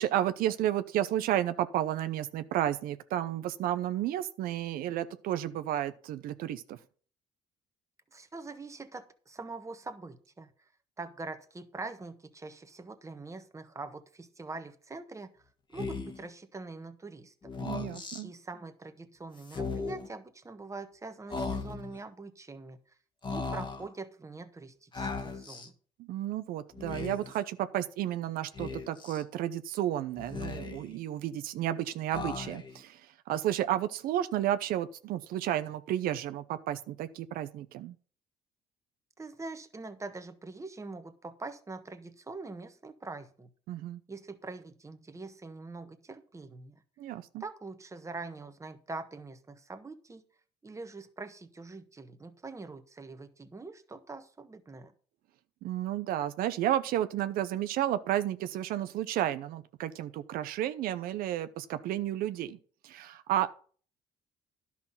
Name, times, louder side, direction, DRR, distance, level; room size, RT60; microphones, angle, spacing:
voice 1, 0.0-6.8 17.6-18.3 26.0-38.0 43.7-44.0 47.0-47.4 55.6-62.6 62.8-63.5, right 12 dB, 75° right, 12 dB, 0.7 m, -32 dB
voice 2, 8.1-10.7 11.0-15.4 15.7-17.3 18.2-22.8 23.3-25.7 39.2-43.5 44.1-46.8 47.4-50.2 50.6-54.9, right 3 dB, 20° right, 9 dB, 1.3 m, -44 dB
Speech, 15.7-16.3 17.4-18.2 19.4-20.1 21.3-22.0 23.2-23.9 24.9-25.7 26.7-27.4 28.6-29.2 30.2-31.0 32.1-32.8, left 4 dB, 30° left, 1.5 m, -37 dB
11.0 x 5.9 x 5.8 m, 0.43 s
supercardioid pair, 85°, 15 cm